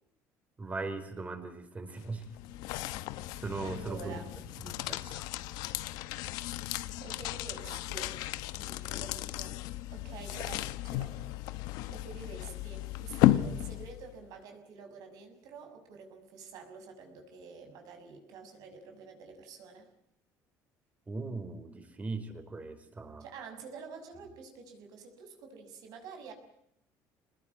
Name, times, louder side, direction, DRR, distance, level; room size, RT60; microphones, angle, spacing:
voice 1, 0.6-2.3 3.3-4.2 4.6-5.3 21.1-23.2, right 3 dB, 20° right, 8 dB, 4.8 m, -39 dB
sound 1, 2.0-14.1, left 15 dB, 85° left, 1.1 m, -34 dB
voice 2, 3.6-4.3 7.0-8.2 8.5-9.6 9.9-11.1 11.9-19.9 23.2-26.3, right 5 dB, 70° right, 4 dB, 6.5 m, -48 dB
24.5 x 20.5 x 9.6 m, 0.74 s
cardioid pair, 125°, 7 cm